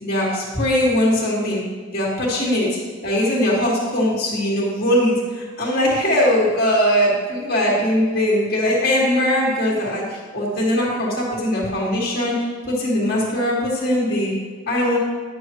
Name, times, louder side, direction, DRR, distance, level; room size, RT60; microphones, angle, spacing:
voice 1, 0.0-1.6 1.9-14.3 14.7-15.0, left 1 dB, 45° left, -3 dB, 2.0 m, -20 dB
10.5 x 6.9 x 3.1 m, 1.5 s
head